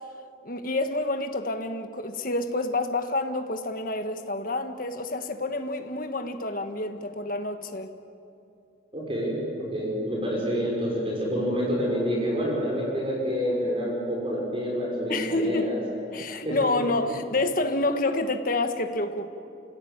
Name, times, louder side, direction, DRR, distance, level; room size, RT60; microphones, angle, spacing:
voice 1, 0.4-7.9 15.1-15.7 16.1-19.3, left 2 dB, 50° left, 7 dB, 1.5 m, -28 dB
voice 2, 8.9-15.7 16.4-16.7, equal, 30° right, -3 dB, 5.7 m, -28 dB
30.0 x 16.5 x 9.0 m, 2.6 s
head